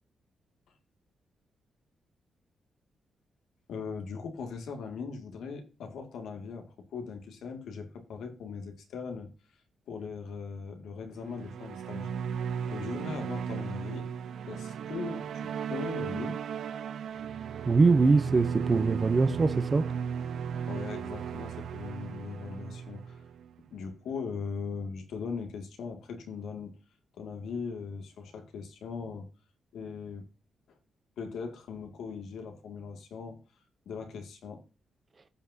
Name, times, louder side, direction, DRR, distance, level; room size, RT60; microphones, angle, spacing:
voice 1, 3.7-9.3 9.9-12.1 12.7-14.1 14.5-16.4 20.7-23.2 23.7-26.7 27.2-29.3 29.7-30.3 31.2-33.4 33.9-34.6, left 5 dB, 85° left, 2.3 m, -39 dB
sound 1, 11.2-23.7, right 7 dB, 75° right, 0.8 m, -36 dB
voice 2, 17.7-19.9, right 4 dB, 30° right, 0.8 m, -23 dB
15.5 x 5.9 x 2.8 m
cardioid pair, 135°, 0 cm